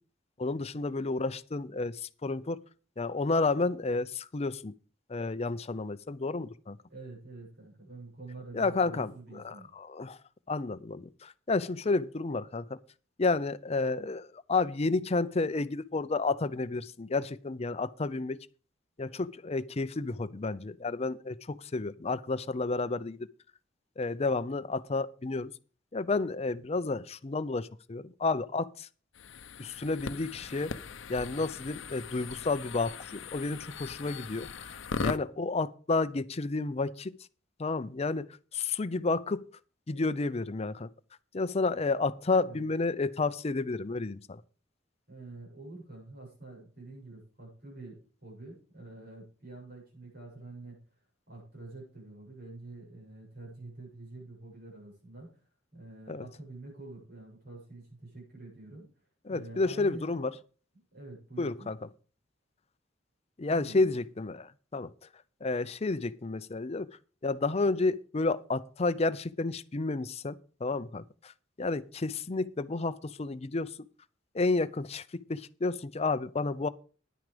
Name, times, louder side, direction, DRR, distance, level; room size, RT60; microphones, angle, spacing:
voice 1, 0.4-2.6 3.0-4.7 5.1-6.8 8.5-10.2 10.5-12.8 13.2-18.5 19.0-23.3 24.0-25.5 25.9-28.9 29.6-30.8 31.1-37.1 37.6-38.3 38.5-39.4 39.9-40.9 41.3-44.4 56.1-56.3 59.2-60.3 61.4-61.8 63.4-64.9 65.4-66.9 67.2-71.3 71.6-73.8 74.3-76.7, left 3 dB, 35° left, 0.5 m, -31 dB
voice 2, 6.9-9.7 42.4-42.7 45.1-50.8 51.3-55.3 55.7-58.9 59.3-60.3 60.9-61.7 63.5-63.9, right 2 dB, 55° right, 7.6 m, -47 dB
sound 1, 29.1-35.2, left 4 dB, 80° left, 0.7 m, -39 dB
10.5 x 9.6 x 5.1 m
head